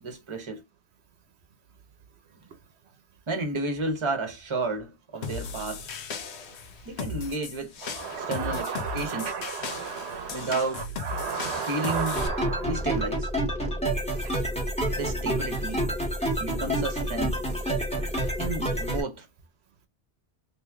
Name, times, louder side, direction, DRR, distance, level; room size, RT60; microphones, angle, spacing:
voice 1, 0.0-0.6 3.3-5.8 6.8-7.7 8.2-9.3 10.3-10.8 11.7-12.2 12.7-13.3 15.0-15.8 16.4-17.4 18.4-19.3, right 3 dB, 30° right, 0.9 m, -31 dB
sound 1, 5.2-12.3, left 4 dB, 80° left, 1.0 m, -37 dB
voice 2, 8.0-10.5 11.1-12.7, right 5 dB, 80° right, 0.9 m, -32 dB
sound 2, 12.1-19.0, right 1 dB, 5° left, 1.4 m, -28 dB
3.0 x 3.0 x 3.5 m
omnidirectional pair, 1.1 m